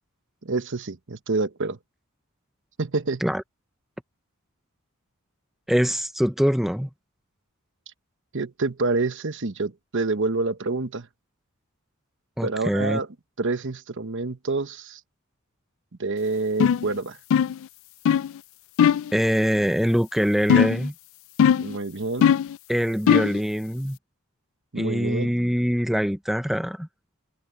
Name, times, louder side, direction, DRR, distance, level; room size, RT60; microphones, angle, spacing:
voice 1, 0.4-1.8 2.8-3.2 8.3-11.1 12.4-13.1 13.4-15.0 16.0-17.2 21.6-22.3 24.7-25.3, right 3 dB, 60° right, 1.0 m, -27 dB
voice 2, 5.7-6.9 12.4-13.0 19.1-20.9 22.7-24.0 24.8-26.9, equal, ahead, 0.6 m, -23 dB
sound 1, 16.6-16.9 17.3-17.6 18.1-18.3 18.8-19.1 20.5-20.9 21.4-21.8 22.2-22.6 23.1-23.4, left 8 dB, 65° left, 0.3 m, -19 dB
head